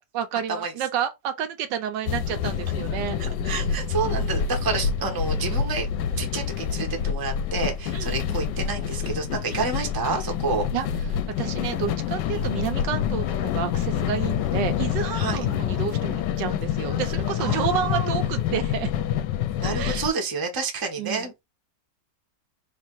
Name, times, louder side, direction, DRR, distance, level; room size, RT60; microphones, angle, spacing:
voice 1, 0.1-3.2 7.9-8.2 9.5-9.7 10.7-10.9 11.4-18.9 19.7-20.1 21.0-21.3, right 9 dB, 85° right, 1.3 m, -30 dB
sound 1, 2.1-20.1, left 8 dB, 80° left, 1.2 m, -27 dB
voice 2, 3.2-5.9 6.2-10.6 12.3-12.5 15.1-15.4 17.4-18.2 19.6-21.4, right 4 dB, 20° right, 0.6 m, -29 dB
3.3 x 2.8 x 4.4 m
omnidirectional pair, 1.9 m